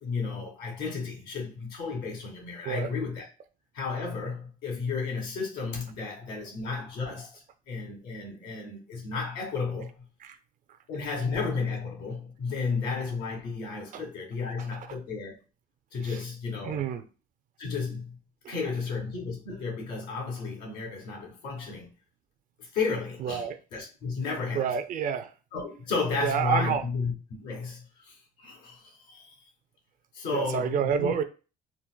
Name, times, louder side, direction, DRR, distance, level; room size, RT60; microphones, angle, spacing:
voice 1, 0.0-3.2 3.7-9.9 10.9-15.3 15.9-16.9 17.6-18.2 18.5-21.9 22.6-23.4 23.7-24.7 25.5-29.3 30.1-31.1, left 4 dB, 90° left, 1.4 m, -33 dB
voice 2, 14.6-15.0 16.0-16.2 16.6-17.0 18.4-18.6 23.2-23.6 24.5-25.3 26.2-26.8 30.3-31.2, right 7 dB, 50° right, 0.4 m, -29 dB
3.9 x 2.2 x 2.2 m
cardioid pair, 110°, 17 cm